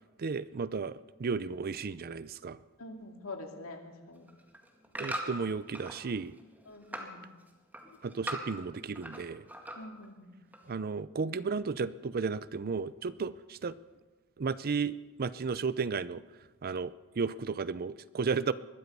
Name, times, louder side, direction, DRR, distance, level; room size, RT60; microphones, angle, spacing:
voice 1, 0.2-2.6 5.0-6.4 8.0-9.5 10.7-13.7 14.4-16.2 16.6-18.5, right 5 dB, 45° right, 17 dB, 0.5 m, -34 dB
voice 2, 2.8-4.3 6.7-7.3 9.8-10.3, left 2 dB, 85° left, 3 dB, 2.2 m, -45 dB
sound 1, 4.2-6.0 6.4-7.1 7.5-9.2 9.5-10.1 10.5-10.6, right 1 dB, 10° right, 1.9 m, -40 dB
21.0 x 12.5 x 5.5 m, 1.3 s
head